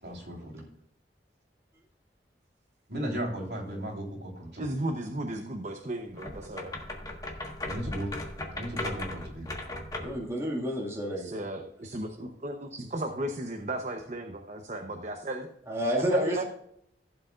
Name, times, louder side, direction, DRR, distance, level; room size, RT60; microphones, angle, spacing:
voice 1, 0.0-0.6 2.9-4.7 7.7-8.1 8.5-9.5, right 1 dB, 70° right, -1 dB, 3.4 m, -35 dB
voice 2, 4.6-6.7 11.2-15.5 15.9-16.4, right 1 dB, 40° right, 4 dB, 0.8 m, -35 dB
sound 1, 6.1-10.2, left 2 dB, 20° left, 1.5 m, -37 dB
voice 3, 10.0-11.3 15.7-16.4, equal, 15° right, -3 dB, 2.0 m, -29 dB
15.5 x 7.8 x 2.5 m, 0.72 s
head